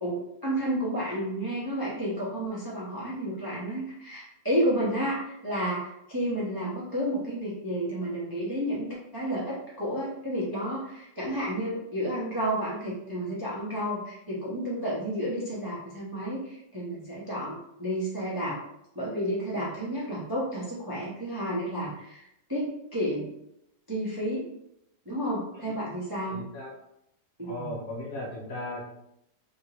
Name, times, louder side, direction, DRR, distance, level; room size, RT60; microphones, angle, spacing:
voice 1, 0.0-18.6 18.9-23.3 23.9-24.4 25.0-26.4 27.4-27.8, equal, 25° right, -7 dB, 0.4 m, -31 dB
voice 2, 26.3-26.7 27.4-28.9, left 1 dB, 65° left, -3 dB, 0.9 m, -37 dB
3.4 x 2.8 x 2.9 m, 0.81 s
omnidirectional pair, 2.0 m